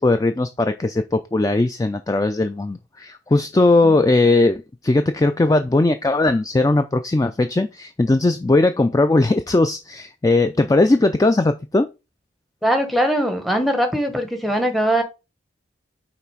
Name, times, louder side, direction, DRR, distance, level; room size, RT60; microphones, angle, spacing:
voice 1, 0.0-11.9, left 2 dB, 20° left, 0.3 m, -18 dB
voice 2, 12.6-15.0, equal, ahead, 1.0 m, -21 dB
5.8 x 4.0 x 4.5 m
head